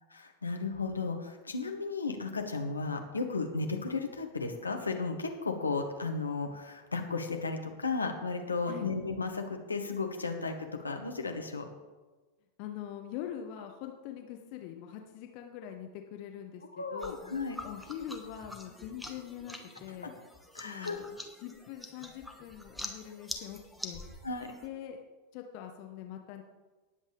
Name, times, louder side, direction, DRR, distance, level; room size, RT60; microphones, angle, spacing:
voice 1, 0.1-10.5 10.8-11.6 16.8-17.6 20.0-20.1 20.5-21.0 24.2-24.5, left 4 dB, 80° left, 4 dB, 1.5 m, -34 dB
voice 2, 12.6-17.1 17.6-20.1 20.6-21.0 21.4-24.0 24.6-25.0 25.3-26.4, left 10 dB, 45° left, 4 dB, 1.1 m, -43 dB
sound 1, 17.0-24.7, left 1 dB, ahead, 1.3 m, -46 dB
18.5 x 8.0 x 3.5 m, 1.2 s
figure-of-eight pair, 90°, 0 cm